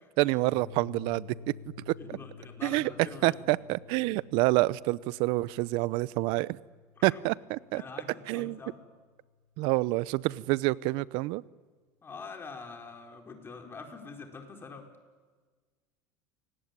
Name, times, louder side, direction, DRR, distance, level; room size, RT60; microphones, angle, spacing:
voice 1, 0.2-1.3 1.9-2.0 2.6-2.9 3.2-6.6 7.0-7.8 8.3-8.6 9.6-11.4, right 20 dB, 65° right, 21 dB, 0.7 m, -27 dB
sound 1, 0.5-9.0, left 6 dB, 70° left, 3.5 m, -51 dB
voice 2, 2.0-3.4 7.0-7.2 7.7-8.8 12.0-14.9, left 4 dB, 25° left, 4 dB, 4.8 m, -45 dB
29.0 x 19.5 x 9.7 m, 1.4 s
supercardioid pair, 105°, 9 cm